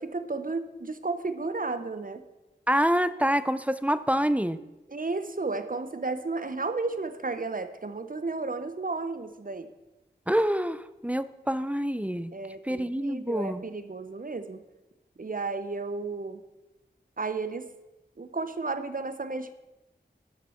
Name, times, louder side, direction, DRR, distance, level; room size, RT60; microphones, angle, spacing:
voice 1, 0.0-2.2 4.9-9.7 12.3-14.6 15.2-16.4 17.2-17.6 18.2-19.5, right 3 dB, 50° right, 10 dB, 0.9 m, -33 dB
voice 2, 2.7-4.6 10.3-12.3 12.6-13.6, equal, 5° right, 14 dB, 0.5 m, -26 dB
13.0 x 7.4 x 5.8 m, 1.0 s
wide cardioid pair, 60°, 19 cm